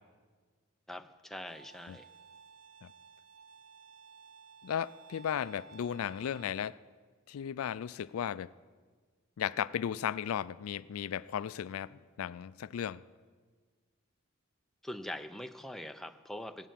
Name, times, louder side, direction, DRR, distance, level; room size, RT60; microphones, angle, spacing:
voice 1, 0.9-2.1 14.8-16.7, left 1 dB, ahead, 0.4 m, -43 dB
Bowed string instrument, 1.5-6.5, right 5 dB, 70° right, 0.8 m, -56 dB
voice 2, 4.6-6.8 7.3-8.5 9.4-13.0, left 9 dB, 80° left, 0.3 m, -35 dB
16.5 x 8.2 x 7.6 m
head